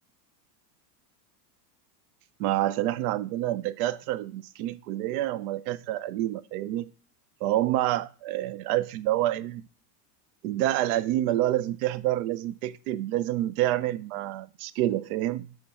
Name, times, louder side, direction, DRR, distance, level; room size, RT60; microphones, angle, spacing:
voice 1, 2.4-6.9 7.4-9.6 10.4-15.5, right 14 dB, 60° right, 0.6 m, -28 dB
7.6 x 6.0 x 4.2 m
supercardioid pair, 150°, 50 cm